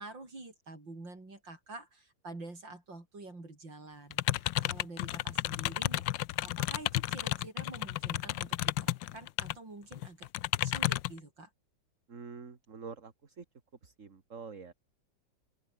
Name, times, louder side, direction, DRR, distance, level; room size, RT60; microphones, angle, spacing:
voice 1, 0.0-10.3 10.6-11.5, right 2 dB, 85° right, 7.2 m, -48 dB
sound 1, 4.1-9.5 9.9-11.2, left 15 dB, 85° left, 1.4 m, -32 dB
voice 2, 12.1-13.5 13.8-14.7, right 5 dB, 45° right, 2.4 m, -46 dB
open air
omnidirectional pair, 2.0 m